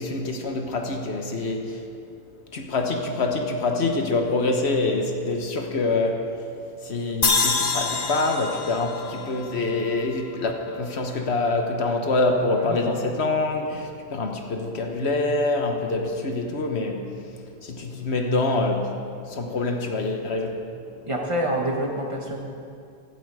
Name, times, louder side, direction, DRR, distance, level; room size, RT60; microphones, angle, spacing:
voice 1, 0.0-1.8 2.5-6.3 6.8-17.0 17.6-19.0 19.3-20.7, left 2 dB, 80° left, 4 dB, 1.4 m, -25 dB
sound 1, 7.2-10.5, left 4 dB, 40° left, 0.9 m, -26 dB
voice 2, 21.1-22.4, right 1 dB, 30° right, 0 dB, 1.7 m, -26 dB
16.5 x 11.5 x 4.9 m, 2.5 s
omnidirectional pair, 1.1 m